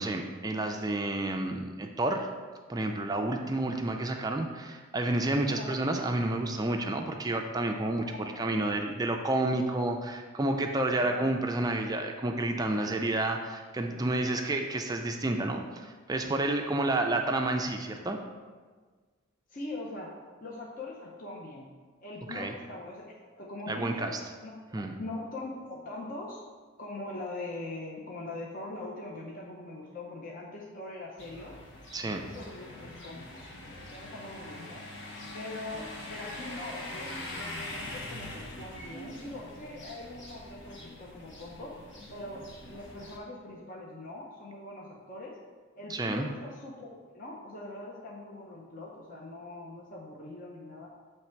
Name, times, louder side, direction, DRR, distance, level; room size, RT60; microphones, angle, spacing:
voice 1, 0.0-2.3 2.7-18.2 22.3-22.5 23.7-24.2 24.7-24.9 31.9-32.2 45.9-46.3, right 2 dB, 20° right, 3 dB, 0.3 m, -30 dB
voice 2, 7.9-8.8 11.0-11.3 19.5-21.7 22.0-24.1 24.4-26.4 26.8-31.5 32.0-33.4 33.9-34.8 35.3-45.3 45.8-50.9, left 2 dB, 40° left, -3 dB, 0.7 m, -42 dB
sound 1, 31.2-43.2, left 1 dB, 60° left, 1.0 m, -43 dB
7.3 x 3.3 x 4.4 m, 1.4 s
head